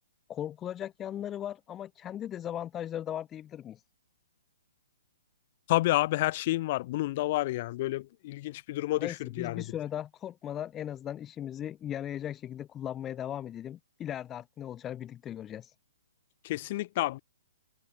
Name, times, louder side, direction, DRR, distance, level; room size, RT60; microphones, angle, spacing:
voice 1, 0.3-3.8 9.0-15.7, left 10 dB, 20° left, 4.9 m, -38 dB
voice 2, 5.7-9.6 16.4-17.2, left 17 dB, 45° left, 6.0 m, -29 dB
open air
hypercardioid pair, 125°, 0 cm